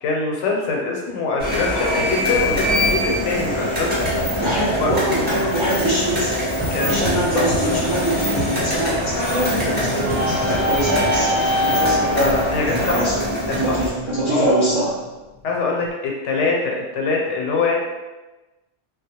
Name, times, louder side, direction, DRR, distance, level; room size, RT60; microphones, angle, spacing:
voice 1, 0.0-4.3 4.8-4.9 6.7-7.1 7.3-7.4 7.7-7.9 12.1-13.2 13.5-13.8 14.3-14.5 15.4-17.8, left 3 dB, 85° left, -1 dB, 0.9 m, -23 dB
sound 1, 1.4-13.9, left 1 dB, 10° right, 0.7 m, -22 dB
voice 2, 4.4-12.4 12.7-13.2 13.5-14.9, right 1 dB, 40° right, -9 dB, 0.4 m, -24 dB
sound 2, 9.2-15.9, left 3 dB, 80° right, 1.1 m, -39 dB
Wind instrument woodwind instrument, 9.4-15.1, left 1 dB, 60° right, 0.8 m, -41 dB
2.3 x 2.0 x 2.8 m, 1.1 s
omnidirectional pair, 1.2 m